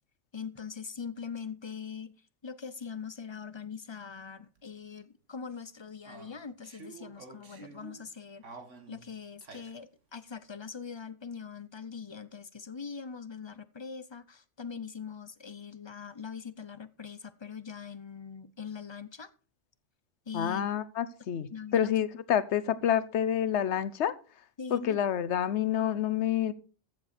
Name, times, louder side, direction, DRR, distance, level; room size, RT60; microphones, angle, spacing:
voice 1, 0.3-2.1 2.4-8.4 8.9-19.3 20.3-20.7 21.5-21.9 24.6-25.0, left 6 dB, 35° left, 0.4 m, -42 dB
sound 1, 4.2-4.3 4.6-4.7 6.0-8.1 8.4-9.8, right 3 dB, 80° right, 2.1 m, -49 dB
voice 2, 20.3-24.1 24.7-26.5, left 10 dB, 70° left, 1.1 m, -28 dB
14.5 x 7.4 x 4.3 m
omnidirectional pair, 1.2 m